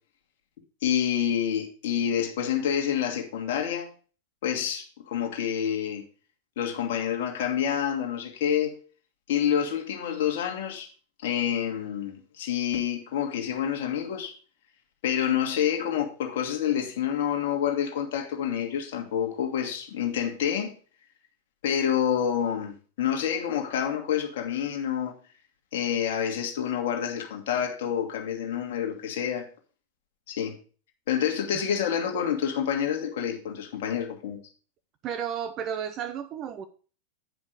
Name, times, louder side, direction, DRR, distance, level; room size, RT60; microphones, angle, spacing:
voice 1, 0.8-3.9 4.4-6.0 6.6-8.8 9.3-10.9 11.2-14.4 15.0-20.7 21.6-25.1 25.7-29.5 30.3-30.6 31.1-34.4, left 9 dB, 55° left, 1.7 m, -28 dB
voice 2, 35.0-36.6, right 8 dB, 35° right, 0.6 m, -32 dB
9.4 x 5.3 x 5.0 m
figure-of-eight pair, 90°, 0 cm